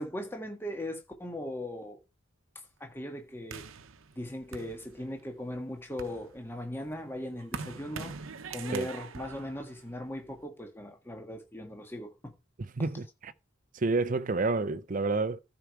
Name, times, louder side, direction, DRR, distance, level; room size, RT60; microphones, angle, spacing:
voice 1, 0.0-2.0 2.8-3.7 4.1-8.1 8.5-12.3, left 1 dB, 10° left, 1.5 m, -39 dB
sound 1, 3.5-5.3 5.8-10.4, right 5 dB, 80° right, 0.8 m, -44 dB
voice 2, 12.6-13.3 13.7-15.4, right 3 dB, 40° right, 0.5 m, -29 dB
14.0 x 4.8 x 4.6 m
head